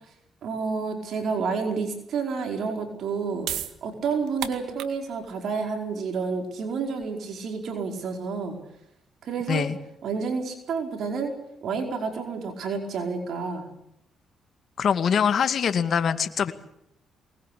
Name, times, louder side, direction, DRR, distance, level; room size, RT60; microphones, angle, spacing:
voice 1, 0.4-3.5 3.8-8.6 9.2-9.6 10.0-11.3 11.6-13.7, right 5 dB, 65° right, 3 dB, 4.9 m, -29 dB
sound 1, 3.2-9.7, right 11 dB, 85° right, 2.1 m, -39 dB
voice 2, 14.8-16.5, left 7 dB, 55° left, 9 dB, 2.2 m, -23 dB
23.5 x 20.5 x 8.5 m, 0.76 s
cardioid pair, 90°, 0 cm